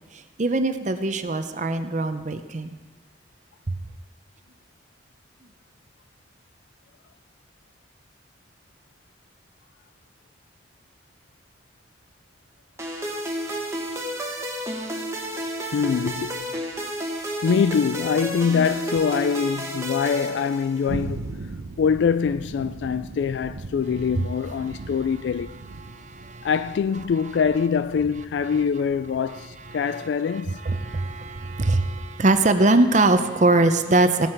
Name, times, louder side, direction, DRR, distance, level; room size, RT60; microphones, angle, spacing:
voice 1, 0.4-2.7 3.7-3.8 24.2-24.3 25.8-26.5 29.7-30.1 30.6-34.3, right 2 dB, 40° right, 0.7 m, -22 dB
sound 1, 12.8-21.1, equal, 15° right, 1.4 m, -31 dB
voice 2, 15.7-16.4 17.4-21.4 21.8-25.6 26.4-30.6, left 6 dB, 70° left, 0.3 m, -24 dB
sound 2, 20.9-29.8, right 3 dB, 85° right, 0.7 m, -39 dB
16.5 x 7.8 x 5.9 m
head